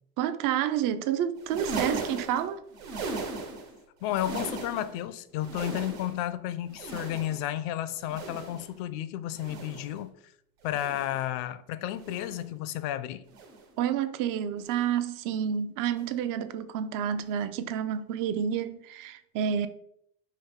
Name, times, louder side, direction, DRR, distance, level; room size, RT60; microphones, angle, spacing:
voice 1, 0.2-2.6 13.8-19.7, right 9 dB, 50° right, 0.5 m, -29 dB
sound 1, 1.4-3.8 4.0-5.0 5.3-6.3 6.7-7.6 8.0-8.8 9.3-10.0 10.7-11.2 12.0-12.5 13.3-13.7 14.6-15.0 15.9-16.1 17.3-17.4, right 3 dB, 85° right, 1.4 m, -38 dB
voice 2, 4.0-10.1 10.6-13.2, left 12 dB, 70° left, 0.5 m, -32 dB
4.7 x 3.1 x 3.6 m
supercardioid pair, 100°, 44 cm